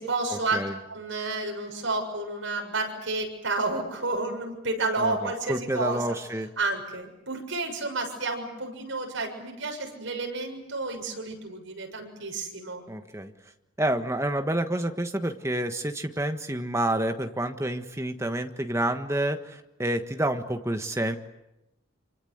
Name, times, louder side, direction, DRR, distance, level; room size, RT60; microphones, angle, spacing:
voice 1, 0.0-0.6 0.9-6.0 6.6-12.8, right 3 dB, 70° right, 2 dB, 7.0 m, -30 dB
voice 2, 5.0-6.5 12.9-13.3 13.8-21.2, right 1 dB, 15° right, 6 dB, 1.5 m, -29 dB
27.5 x 25.5 x 8.0 m, 0.96 s
head